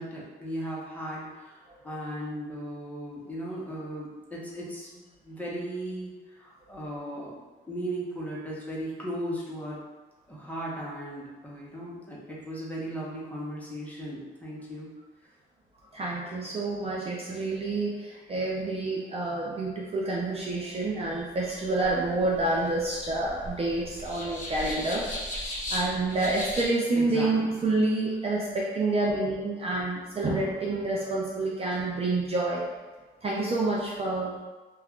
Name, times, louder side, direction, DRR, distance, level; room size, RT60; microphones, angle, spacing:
voice 1, 0.0-7.4 7.7-9.8 10.3-14.9 26.9-27.7, right 1 dB, 5° left, -6 dB, 0.8 m, -37 dB
voice 2, 15.9-25.1 25.7-32.7 33.2-34.4, right 2 dB, 30° right, -4 dB, 0.5 m, -28 dB
sound 1, 21.4-26.7, left 1 dB, 40° left, 0.9 m, -37 dB
2.4 x 2.2 x 3.5 m, 1.2 s
cardioid pair, 90°, 20 cm